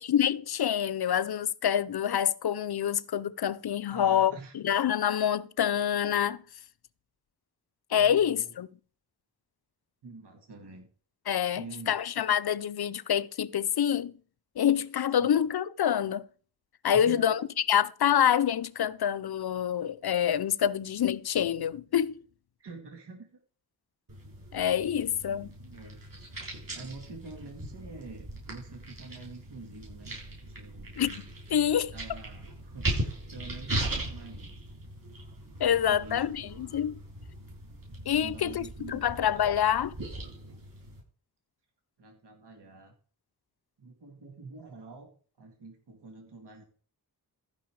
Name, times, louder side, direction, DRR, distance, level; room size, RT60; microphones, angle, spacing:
voice 1, 0.0-6.4 7.9-8.7 11.3-14.1 14.6-16.2 16.8-22.2 24.5-25.5 31.0-31.2 31.5-31.9 35.6-37.0 38.1-40.0, left 9 dB, 65° left, 0.7 m, -27 dB
voice 2, 3.9-4.5 8.0-8.5 10.0-10.9 11.5-12.2 15.2-15.4 16.9-17.4 22.6-23.3 25.3-26.0 26.7-30.2 30.5-31.0 31.9-34.6 35.7-36.5 38.1-39.3 42.0-42.9 43.8-45.1 45.4-46.6, right 3 dB, 75° right, 2.4 m, -47 dB
sound 1, 24.1-41.0, right 1 dB, 55° right, 6.8 m, -39 dB
15.0 x 5.6 x 4.8 m
cardioid pair, 60°, 41 cm